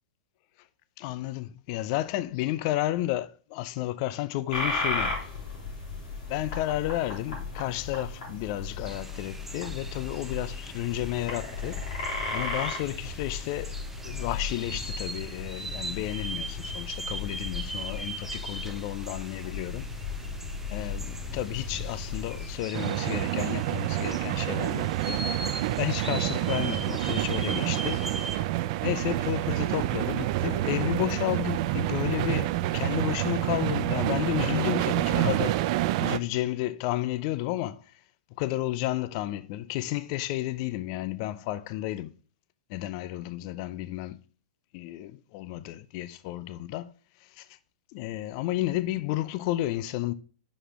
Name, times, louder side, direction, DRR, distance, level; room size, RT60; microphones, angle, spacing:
voice 1, 1.0-5.2 6.3-11.8 12.3-19.9 20.7-25.2 25.8-28.1 28.8-35.6 36.0-37.8 38.4-42.1 42.7-44.2 44.7-46.9 47.4-47.5 47.9-50.1, left 15 dB, 45° left, 0.5 m, -32 dB
sound 1, 4.5-22.6, left 3 dB, 65° left, 3.8 m, -35 dB
sound 2, 8.9-28.4, right 2 dB, 5° right, 0.8 m, -41 dB
sound 3, 22.7-36.2, right 15 dB, 50° right, 0.4 m, -28 dB
6.3 x 5.0 x 4.9 m
hypercardioid pair, 105°, 4 cm